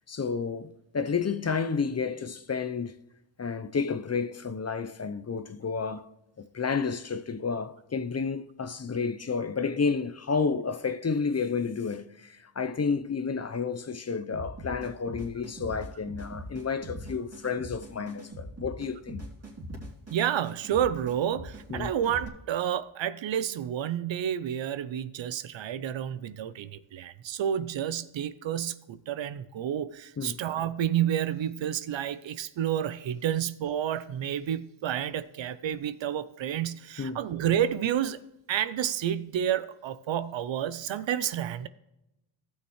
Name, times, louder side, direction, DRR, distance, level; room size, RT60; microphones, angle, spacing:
voice 1, 0.0-3.0 3.4-6.1 6.4-19.3 21.7-21.9 30.2-30.4 37.0-37.2, left 5 dB, 35° left, 0.7 m, -31 dB
sound 1, 14.3-22.3, equal, 30° right, 2.7 m, -42 dB
voice 2, 20.1-38.2 38.5-41.7, right 10 dB, 70° right, 0.6 m, -30 dB
15.0 x 6.5 x 3.1 m
cardioid pair, 60°, 47 cm